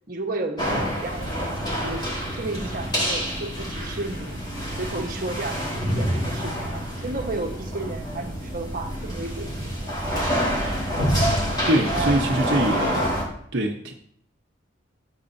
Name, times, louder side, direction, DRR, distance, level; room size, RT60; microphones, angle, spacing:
voice 1, 0.1-2.0 2.3-4.4 4.8-10.0 11.6-12.1, right 2 dB, 50° right, 2 dB, 1.2 m, -33 dB
sound 1, 0.6-13.2, equal, 25° left, 4.0 m, -27 dB
voice 2, 11.7-13.1 13.5-13.9, right 1 dB, 65° right, 0 dB, 0.9 m, -23 dB
14.0 x 8.0 x 2.7 m, 0.65 s
head